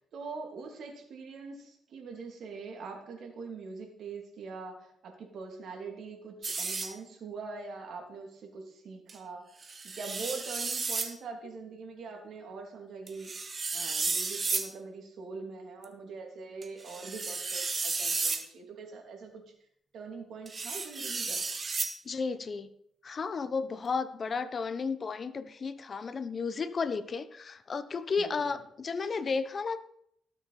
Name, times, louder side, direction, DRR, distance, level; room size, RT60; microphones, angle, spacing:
voice 1, 0.1-13.3 13.7-19.4 19.9-21.4 28.2-28.5, right 4 dB, 65° right, 3 dB, 2.8 m, -43 dB
sound 1, 6.4-6.9 9.1-9.2 9.6-11.1 13.1-14.7 15.8-15.9 16.6-18.4 20.5-21.9, right 4 dB, 35° right, 1.4 m, -33 dB
voice 2, 22.0-22.7 23.0-29.8, left 5 dB, 40° left, 12 dB, 0.8 m, -33 dB
18.0 x 7.2 x 4.2 m, 0.70 s
cardioid pair, 95°, 0 cm